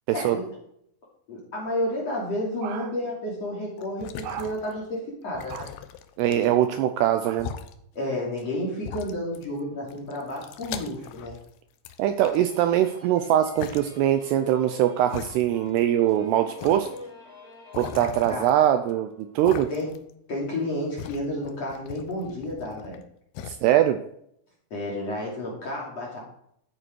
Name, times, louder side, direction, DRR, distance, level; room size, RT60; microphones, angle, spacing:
voice 1, 0.1-0.5 1.3-5.7 7.9-11.3 18.3-18.4 19.7-19.9 20.3-23.0 24.7-26.2, left 1 dB, 40° left, -4 dB, 3.2 m, -31 dB
sound 1, 3.8-4.9 5.3-6.7 7.3-7.7 8.4-8.5 8.8-9.6 9.9-11.5 11.8-12.9 13.6-13.8 14.5-14.6 15.1-15.8 16.1-16.2 16.6-17.0 17.7-18.9 19.4-20.1 20.4-23.0 23.3-23.6, left 8 dB, 80° left, 2.3 m, -39 dB
voice 2, 6.2-7.5 12.0-16.9 17.8-19.7 23.4-24.0, right 11 dB, 85° right, 8 dB, 2.4 m, -22 dB
sound 2, 12.2-19.4, left 3 dB, 20° left, 3.7 m, -47 dB
13.0 x 9.1 x 4.6 m, 0.71 s
omnidirectional pair, 5.4 m